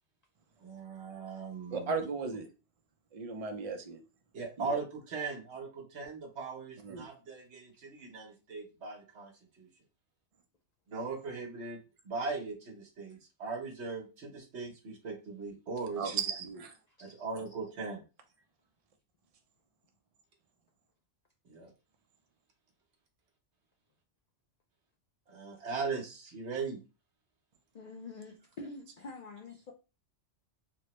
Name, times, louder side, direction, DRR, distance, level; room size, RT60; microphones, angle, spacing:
voice 1, 0.6-1.9 4.3-9.3 9.6-9.7 10.9-16.2 17.0-18.0 21.5-21.7 25.3-26.8, right 4 dB, 70° right, 1.1 m, -39 dB
voice 2, 1.7-2.5 3.1-4.0 4.6-4.8 6.8-7.0 16.0-16.7, right 5 dB, 45° right, 0.4 m, -36 dB
voice 3, 16.9-17.3 27.7-29.7, left 3 dB, 65° left, 0.4 m, -46 dB
3.2 x 2.1 x 2.9 m
omnidirectional pair, 1.2 m